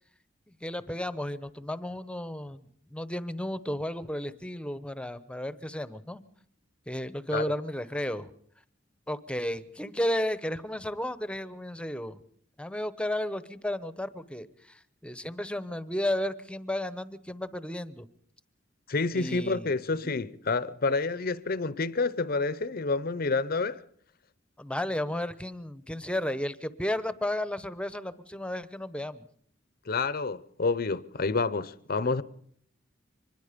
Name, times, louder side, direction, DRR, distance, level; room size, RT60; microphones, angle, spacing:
voice 1, 0.6-6.2 6.9-8.3 9.1-12.2 12.6-18.1 19.1-20.2 24.6-29.3, left 1 dB, 5° left, 0.9 m, -33 dB
voice 2, 18.9-23.8 29.9-32.2, left 3 dB, 50° left, 0.8 m, -28 dB
24.5 x 21.0 x 5.2 m
head